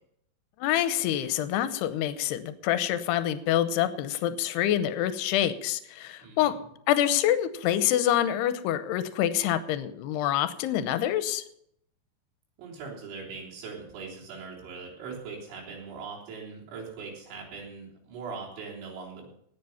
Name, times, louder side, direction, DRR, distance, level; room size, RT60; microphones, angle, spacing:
voice 1, 0.6-6.5 6.9-11.4, left 11 dB, 75° left, 11 dB, 2.6 m, -26 dB
voice 2, 6.2-6.5 12.6-19.3, right 5 dB, 80° right, -3 dB, 5.9 m, -41 dB
18.5 x 7.6 x 5.7 m, 0.71 s
omnidirectional pair, 5.3 m